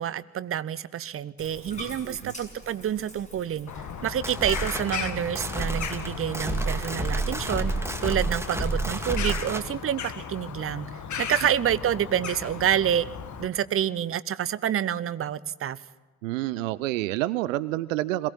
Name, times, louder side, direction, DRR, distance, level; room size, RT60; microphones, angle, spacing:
voice 1, 0.0-3.7 4.0-7.7 8.0-10.9 11.2-13.1 13.4-15.8, right 10 dB, 35° right, 17 dB, 0.8 m, -28 dB
Bathtub (filling or washing), 1.4-9.7, equal, 20° left, 6.8 m, -47 dB
Bird vocalization bird call bird song, 3.7-13.5, left 7 dB, 45° left, 1.7 m, -36 dB
sound 1, 4.0-9.7, right 2 dB, 5° right, 2.1 m, -30 dB
voice 2, 16.2-18.3, right 17 dB, 75° right, 18 dB, 0.6 m, -28 dB
22.0 x 16.5 x 7.4 m, 1.2 s
figure-of-eight pair, 50°, 39 cm